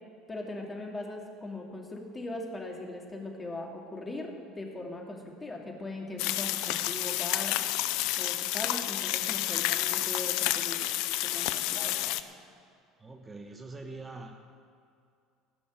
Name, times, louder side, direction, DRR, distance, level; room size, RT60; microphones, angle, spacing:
voice 1, 0.3-7.6 8.2-10.9 11.2-12.2, left 2 dB, 20° left, 0 dB, 2.7 m, -40 dB
sound 1, 6.2-12.2, left 14 dB, 65° left, 0.5 m, -30 dB
voice 2, 13.0-14.3, right 3 dB, 20° right, 4 dB, 1.1 m, -43 dB
17.0 x 6.2 x 9.0 m, 2.4 s
hypercardioid pair, 70°, 0 cm